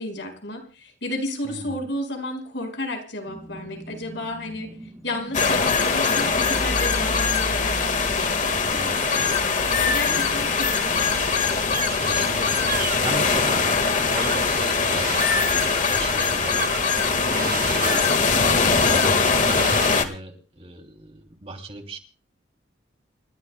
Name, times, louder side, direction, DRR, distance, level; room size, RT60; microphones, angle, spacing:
voice 1, 0.0-4.7 5.0-8.8 9.1-11.1 17.1-17.5, left 1 dB, 75° left, 5 dB, 5.1 m, -32 dB
voice 2, 1.4-1.8 8.7-9.1 9.7-10.3 12.0-12.6 13.0-13.6 14.0-15.3 15.5-16.7 17.3-22.0, right 2 dB, 35° right, 5 dB, 2.7 m, -37 dB
sound 1, 3.2-11.2, right 1 dB, 15° right, 2.7 m, -42 dB
sound 2, 5.3-20.0, left 5 dB, 45° left, 1.6 m, -22 dB
sound 3, 10.9-20.0, right 6 dB, 50° right, 1.0 m, -34 dB
29.5 x 14.5 x 2.2 m, 0.35 s
head